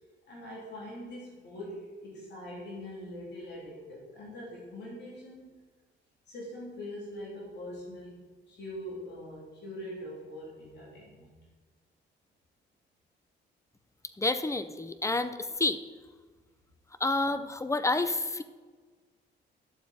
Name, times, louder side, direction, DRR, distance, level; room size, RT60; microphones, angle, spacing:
voice 1, 0.3-5.6 6.3-11.3, left 1 dB, 60° left, -5 dB, 3.4 m, -43 dB
voice 2, 14.2-15.8 17.0-18.4, left 2 dB, 15° left, 11 dB, 0.7 m, -29 dB
11.5 x 7.2 x 4.4 m, 1.4 s
cardioid pair, 90°, 20 cm